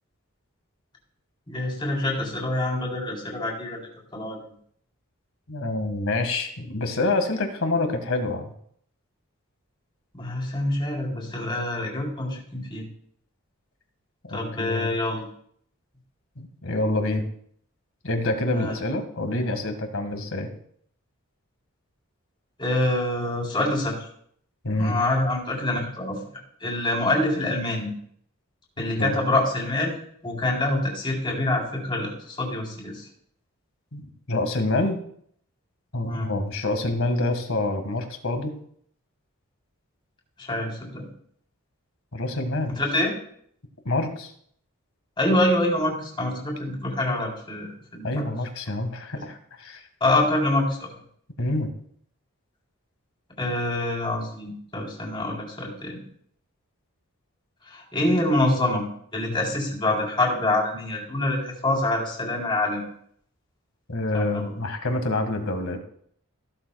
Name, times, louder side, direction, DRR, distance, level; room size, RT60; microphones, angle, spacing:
voice 1, 1.5-3.8 4.1-4.4 10.1-12.8 14.3-15.2 18.5-18.7 22.6-24.1 24.8-27.9 28.8-29.9 30.2-33.1 36.0-36.3 40.4-41.1 42.7-43.1 45.2-48.3 49.1-49.3 50.0-50.9 53.4-56.0 57.7-58.9 59.1-62.8 64.1-64.5, left 1 dB, 20° left, -2 dB, 3.7 m, -26 dB
voice 2, 5.5-8.5 14.3-14.9 16.4-17.3 18.0-20.5 24.6-24.9 29.0-29.1 33.9-34.0 34.3-35.0 35.9-38.6 42.1-42.8 43.9-44.3 48.0-49.8 51.4-51.7 63.9-65.8, left 2 dB, 70° left, 6 dB, 1.9 m, -27 dB
15.5 x 12.0 x 2.4 m, 0.64 s
head